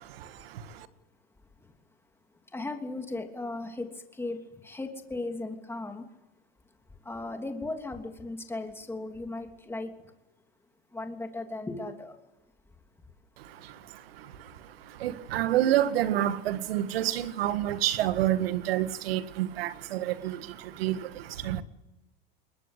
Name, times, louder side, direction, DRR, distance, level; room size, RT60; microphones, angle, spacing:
voice 1, 2.5-6.1 7.0-9.9 10.9-12.2, left 2 dB, 10° left, 3.0 m, -36 dB
voice 2, 15.0-20.0 20.2-20.3 20.8-21.0 21.5-21.6, right 12 dB, 85° right, 1.8 m, -27 dB
22.0 x 21.0 x 8.3 m
supercardioid pair, 120°, 29 cm